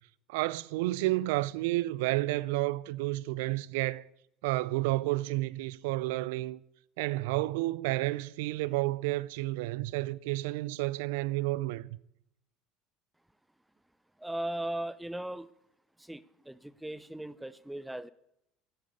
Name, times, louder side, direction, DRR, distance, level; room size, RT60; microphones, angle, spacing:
voice 1, 0.3-4.0 4.4-6.6 7.0-12.0, right 19 dB, 75° right, 0.4 m, -31 dB
voice 2, 14.2-15.5 16.0-18.1, right 1 dB, 5° right, 0.5 m, -38 dB
9.7 x 9.0 x 8.1 m
hypercardioid pair, 70°, 0 cm